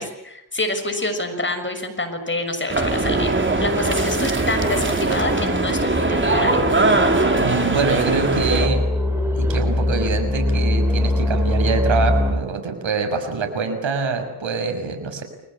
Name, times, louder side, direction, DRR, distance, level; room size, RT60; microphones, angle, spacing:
voice 1, 0.0-3.3 3.6-6.6, left 2 dB, 25° left, 7 dB, 6.5 m, -27 dB
sound 1, 2.7-8.7, right 2 dB, 25° right, 4.5 m, -20 dB
sound 2, 5.1-12.3, left 1 dB, 5° right, 6.0 m, -23 dB
voice 2, 7.4-8.8 9.3-15.2, right 4 dB, 75° right, 5 dB, 6.6 m, -24 dB
30.0 x 21.5 x 8.9 m, 0.79 s
wide cardioid pair, 105°, 46 cm